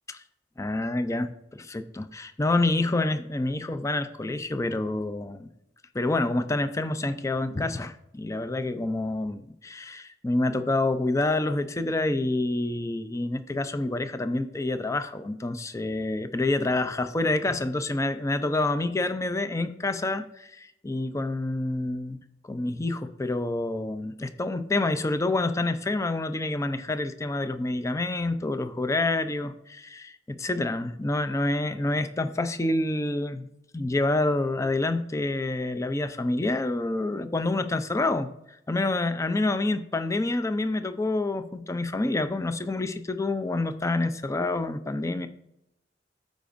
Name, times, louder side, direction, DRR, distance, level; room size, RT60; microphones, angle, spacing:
voice 1, 0.6-5.5 5.9-22.2 22.4-33.5 33.7-38.3 38.7-45.3, left 2 dB, 15° left, 10 dB, 0.4 m, -27 dB
13.0 x 5.1 x 2.5 m, 0.80 s
head